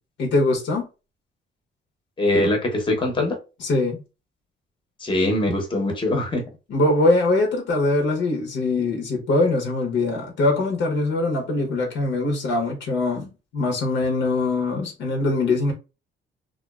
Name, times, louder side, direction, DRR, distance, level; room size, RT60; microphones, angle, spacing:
voice 1, 0.2-0.9 3.6-4.0 6.7-15.7, left 2 dB, 70° left, 0.8 m, -22 dB
voice 2, 2.2-3.4 5.0-6.4, left 1 dB, 25° left, 0.8 m, -22 dB
2.5 x 2.2 x 2.3 m
cardioid pair, 90°, 20 cm